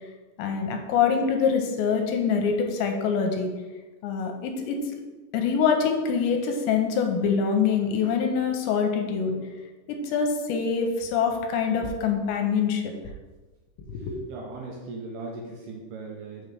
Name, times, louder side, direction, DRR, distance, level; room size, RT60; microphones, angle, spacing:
voice 1, 0.4-3.5 4.0-5.0 5.3-9.4 9.9-12.8 13.9-14.1, left 6 dB, 80° left, 4 dB, 2.9 m, -25 dB
voice 2, 14.3-16.5, right 3 dB, 80° right, 0 dB, 2.4 m, -38 dB
6.7 x 6.3 x 3.3 m, 1.2 s
omnidirectional pair, 5.2 m